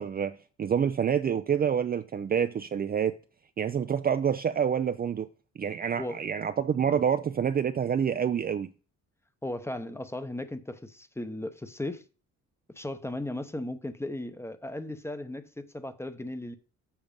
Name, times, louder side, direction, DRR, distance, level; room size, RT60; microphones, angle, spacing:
voice 1, 0.0-3.1 3.6-5.3 5.6-8.7, right 8 dB, 30° right, 0.4 m, -27 dB
voice 2, 9.4-12.0 12.7-16.6, left 1 dB, 10° left, 0.8 m, -36 dB
7.1 x 6.2 x 5.2 m
cardioid pair, 90°, 30 cm